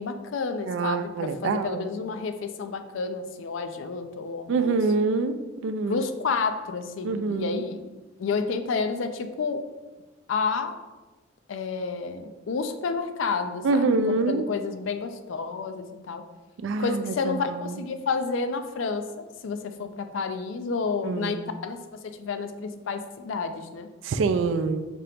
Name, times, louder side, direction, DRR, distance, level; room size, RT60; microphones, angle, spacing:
voice 1, 0.0-4.8 5.9-7.8 8.2-9.6 10.3-10.8 11.5-16.2 16.8-23.9, left 4 dB, 75° left, 8 dB, 0.4 m, -30 dB
voice 2, 0.7-1.9 4.5-5.4 5.6-6.0 7.0-7.7 13.6-14.4 16.6-17.8 21.0-21.4 24.0-24.9, right 3 dB, 75° right, 9 dB, 0.3 m, -26 dB
5.1 x 2.8 x 3.4 m, 1.2 s
head